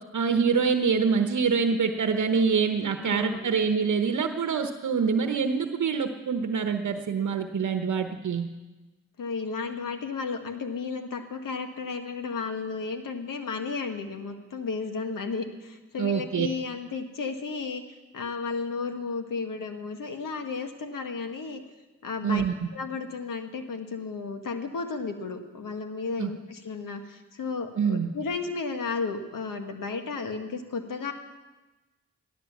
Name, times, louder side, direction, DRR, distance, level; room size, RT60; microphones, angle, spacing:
voice 1, 0.1-8.5 16.0-16.5 22.2-22.5 26.2-26.3 27.8-28.1, right 6 dB, 60° right, 7 dB, 1.0 m, -25 dB
voice 2, 3.0-3.5 9.2-17.8 18.1-21.6 22.0-22.4 22.7-31.1, left 4 dB, 75° left, 6 dB, 1.7 m, -33 dB
14.5 x 11.5 x 7.3 m, 1.2 s
cardioid pair, 50°, 33 cm